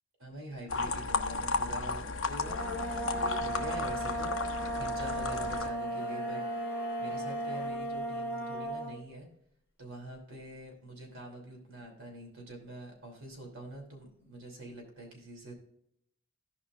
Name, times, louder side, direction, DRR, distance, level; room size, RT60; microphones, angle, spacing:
voice 1, 0.2-6.6 7.0-9.3 9.8-15.5, right 1 dB, 65° right, 1 dB, 3.0 m, -45 dB
sound 1, 0.7-5.7, left 3 dB, 60° left, 0.8 m, -34 dB
sound 2, 2.4-9.0, right 1 dB, 10° left, 1.1 m, -35 dB
sound 3, 5.3-7.8 8.0-8.1, left 2 dB, 10° right, 2.9 m, -49 dB
15.5 x 5.4 x 2.5 m, 0.74 s
head